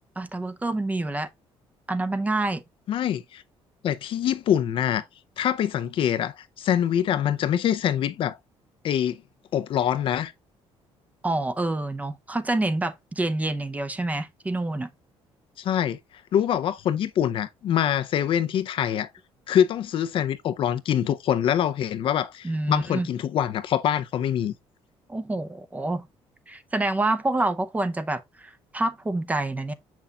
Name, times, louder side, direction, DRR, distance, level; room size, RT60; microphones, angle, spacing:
voice 1, 0.2-1.3 1.9-2.6 11.2-14.9 22.4-23.1 25.1-26.0 26.5-29.7, right 2 dB, 15° right, 0.6 m, -27 dB
voice 2, 2.9-3.4 3.8-5.0 5.4-8.4 8.8-9.2 9.5-10.3 15.6-16.0 16.3-19.1 19.5-24.5, left 10 dB, 55° left, 0.5 m, -24 dB
6.9 x 6.0 x 2.3 m
cardioid pair, 125°, 11 cm